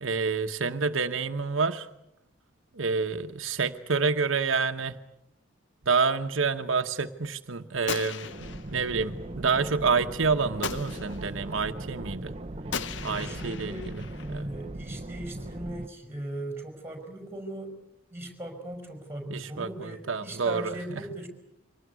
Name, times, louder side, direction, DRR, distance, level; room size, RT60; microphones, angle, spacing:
voice 1, 0.0-1.9 2.7-4.9 5.9-8.3 8.7-12.3 13.0-14.0 14.3-14.5 19.3-20.7, right 5 dB, 75° right, 7 dB, 1.0 m, -28 dB
Gunshot gunfire, 7.9-9.0 10.6-11.4 12.7-14.4, left 6 dB, 65° left, 0.9 m, -37 dB
sound 1, 8.2-15.9, right 1 dB, 30° right, 0.9 m, -39 dB
voice 2, 13.1-17.7 18.1-21.3, right 1 dB, 10° right, 5 dB, 5.5 m, -39 dB
24.5 x 19.0 x 9.5 m, 0.85 s
head